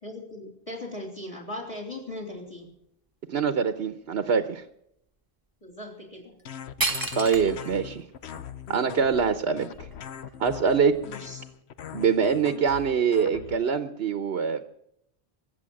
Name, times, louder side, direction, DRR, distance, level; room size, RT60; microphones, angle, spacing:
voice 1, 0.0-2.7 5.6-6.4 11.0-11.4, left 1 dB, 30° left, 1 dB, 3.7 m, -38 dB
voice 2, 3.3-4.6 7.1-8.1 8.7-9.9 10.4-11.0 11.9-14.6, right 6 dB, 75° right, 10 dB, 1.1 m, -24 dB
sound 1, 6.4-6.5 6.8-7.8 8.3-8.4 9.0-10.4, right 2 dB, 20° right, 1.0 m, -31 dB
sound 2, 6.5-13.6, left 8 dB, 85° left, 1.1 m, -41 dB
22.5 x 8.1 x 7.7 m, 0.77 s
omnidirectional pair, 1.1 m